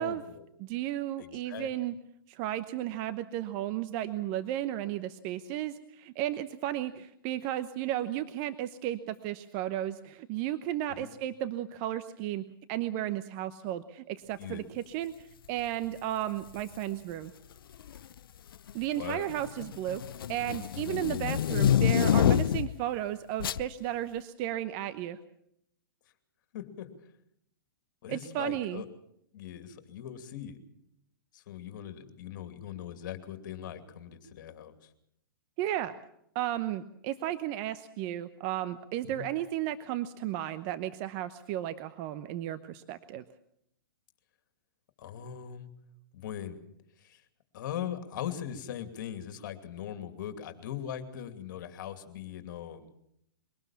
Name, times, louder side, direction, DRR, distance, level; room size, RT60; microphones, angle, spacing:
voice 1, 0.0-0.4 1.2-1.7 10.9-11.1 14.4-14.7 19.0-19.3 26.5-26.9 28.0-28.9 29.3-30.6 31.3-34.9 39.0-39.2 45.0-45.7 46.1-46.6 47.0-47.2 47.5-52.9, left 10 dB, 55° left, 8 dB, 2.7 m, -40 dB
voice 2, 0.6-1.9 2.3-17.3 18.7-20.0 20.3-25.2 28.1-28.8 35.6-35.9 36.3-43.2, right 13 dB, 40° right, 12 dB, 0.9 m, -34 dB
sound 1, 16.5-16.8 17.7-18.2 18.5-22.8 23.4-23.7, left 9 dB, 75° left, 0.7 m, -27 dB
22.5 x 18.5 x 7.2 m, 0.77 s
hypercardioid pair, 130°, 12 cm